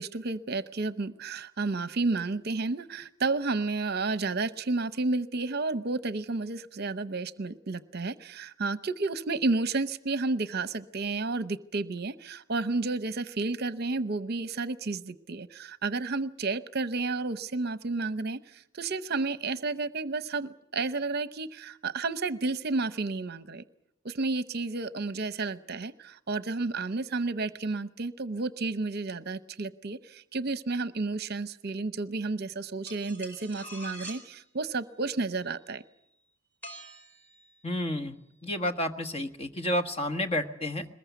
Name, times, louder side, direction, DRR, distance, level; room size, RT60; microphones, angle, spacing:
voice 1, 0.0-23.6 24.0-35.8, right 3 dB, 50° right, 13 dB, 0.8 m, -31 dB
sound 1, 32.9-34.3 36.6-37.4, right 1 dB, 10° left, 4.2 m, -44 dB
voice 2, 37.6-38.2 38.4-40.9, left 1 dB, 30° left, 6 dB, 1.4 m, -30 dB
22.5 x 20.5 x 8.2 m, 0.77 s
head